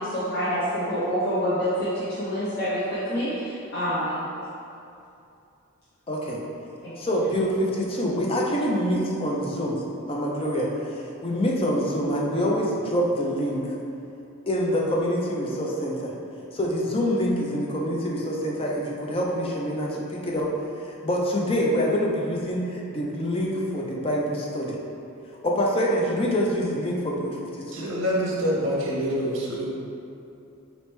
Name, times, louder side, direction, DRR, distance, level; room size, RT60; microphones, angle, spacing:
voice 1, 0.0-4.2 6.8-7.0, equal, 50° left, -12 dB, 0.8 m, -27 dB
voice 2, 6.1-6.4 7.0-9.8 10.1-13.8 14.5-16.1 16.5-20.5 20.8-24.8 25.4-27.9, equal, 25° left, -3 dB, 0.4 m, -26 dB
voice 3, 27.7-29.6, equal, 65° right, -4 dB, 0.8 m, -26 dB
4.0 x 3.0 x 3.2 m, 2.7 s
head